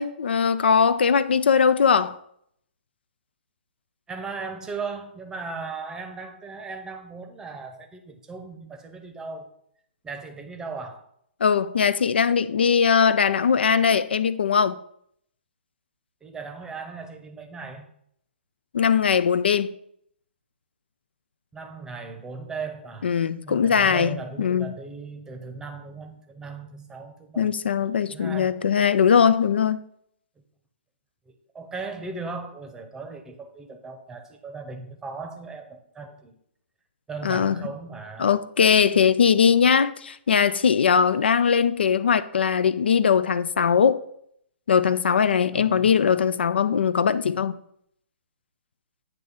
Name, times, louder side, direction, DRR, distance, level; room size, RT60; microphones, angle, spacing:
voice 1, 0.0-2.2 11.4-14.8 18.7-19.7 23.0-24.7 27.4-29.8 37.2-37.5 38.2-44.0 44.7-47.5, left 6 dB, 65° left, 0.3 m, -20 dB
voice 2, 4.1-9.5 10.0-11.0 16.2-17.9 21.5-23.2 23.4-27.5 27.8-28.6 31.3-36.4 37.1-38.3 45.5-46.3, right 4 dB, 10° right, 0.8 m, -37 dB
8.9 x 3.1 x 6.0 m
figure-of-eight pair, 125°, 6 cm